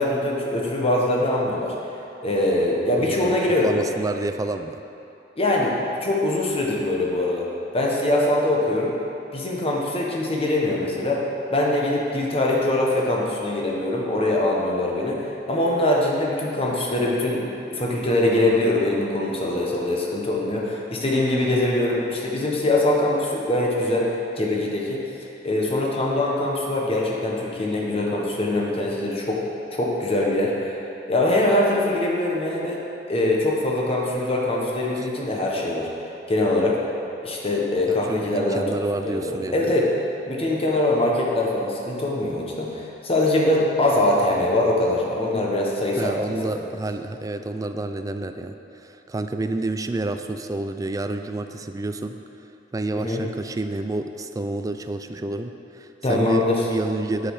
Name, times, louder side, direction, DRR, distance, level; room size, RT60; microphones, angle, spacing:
voice 1, 0.0-1.7 2.2-3.7 5.4-5.7 6.0-7.5 7.7-8.9 9.3-11.2 11.5-25.0 25.4-29.4 29.7-30.8 31.1-32.8 33.1-35.9 36.3-36.8 37.2-38.6 39.0-39.9 40.3-46.4 52.9-53.2 56.0-56.7, left 1 dB, 30° left, -2 dB, 1.2 m, -23 dB
voice 2, 3.0-4.8 35.0-35.1 37.9-39.7 46.0-52.1 52.7-57.3, right 2 dB, 20° right, 8 dB, 0.3 m, -29 dB
8.7 x 6.6 x 4.9 m, 2.8 s
head